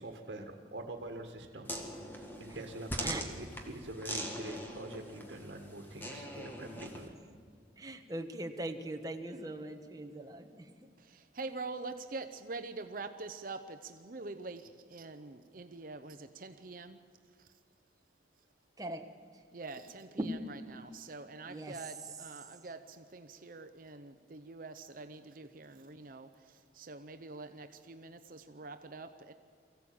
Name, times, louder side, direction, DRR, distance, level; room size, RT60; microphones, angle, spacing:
voice 1, 0.0-1.7 2.1-7.1, right 1 dB, 75° right, 2 dB, 1.7 m, -45 dB
sound 1, 1.7-7.1, equal, 10° left, 1.9 m, -42 dB
voice 2, 7.8-10.6 18.8-19.1 20.2-20.3 21.5-21.7, right 1 dB, 20° right, 5 dB, 1.3 m, -40 dB
voice 3, 11.0-17.0 17.4-17.5 19.5-29.3, right 3 dB, 50° right, 8 dB, 0.8 m, -45 dB
23.5 x 15.5 x 8.8 m, 2.1 s
head